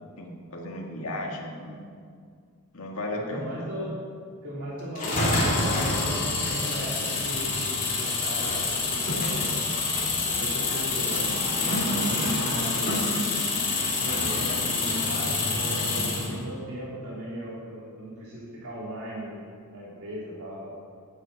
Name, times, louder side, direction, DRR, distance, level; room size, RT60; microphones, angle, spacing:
voice 1, 0.2-1.8 2.7-3.6 16.3-16.4, left 1 dB, 70° left, 0 dB, 1.8 m, -35 dB
voice 2, 3.1-4.0 4.4-9.6 10.3-11.3 11.6-13.0 14.0-20.7, equal, 75° right, -8 dB, 2.8 m, -36 dB
sound 1, 4.9-16.3, left 3 dB, 40° left, 3.0 m, -27 dB
17.5 x 8.7 x 4.0 m, 2.1 s
head